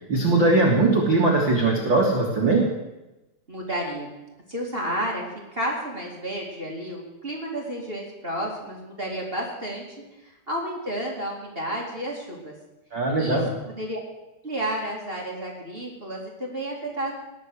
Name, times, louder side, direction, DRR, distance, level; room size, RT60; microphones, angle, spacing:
voice 1, 0.1-2.7 12.9-13.5, right 2 dB, 40° right, -2 dB, 1.7 m, -20 dB
voice 2, 3.5-4.1 4.5-5.2 5.5-9.8 10.5-12.5 13.2-13.4 13.8-14.0 14.4-17.1, right 1 dB, 20° right, -2 dB, 1.5 m, -31 dB
19.0 x 6.4 x 8.1 m, 1.0 s
omnidirectional pair, 4.9 m